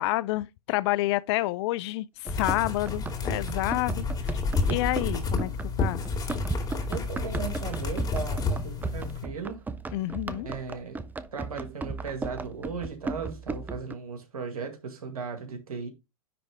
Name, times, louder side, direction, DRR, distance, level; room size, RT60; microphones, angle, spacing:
voice 1, 0.0-4.1 4.3-4.4 4.7-5.5 5.8-6.0 9.9-10.5, left 18 dB, 50° left, 0.5 m, -28 dB
Run, 2.2-13.9, right 3 dB, 10° right, 0.5 m, -36 dB
sound 1, 2.3-9.2, left 4 dB, 20° left, 2.1 m, -30 dB
voice 2, 6.9-9.6 10.4-11.0 11.3-15.9, right 5 dB, 80° right, 2.0 m, -37 dB
9.9 x 3.4 x 3.5 m
hypercardioid pair, 105°, 19 cm